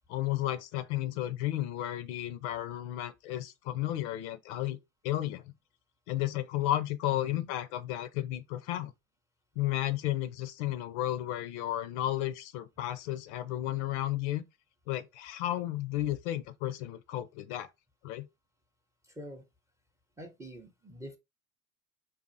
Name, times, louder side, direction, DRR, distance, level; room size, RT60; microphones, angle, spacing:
voice 1, 0.1-4.8 5.0-5.4 6.1-8.9 9.6-14.4 14.9-17.7 18.0-18.3, left 14 dB, 55° left, 0.5 m, -33 dB
voice 2, 7.1-7.5 19.1-19.4 20.2-21.2, equal, 5° right, 0.5 m, -46 dB
3.9 x 2.4 x 2.6 m
figure-of-eight pair, 75°, 44 cm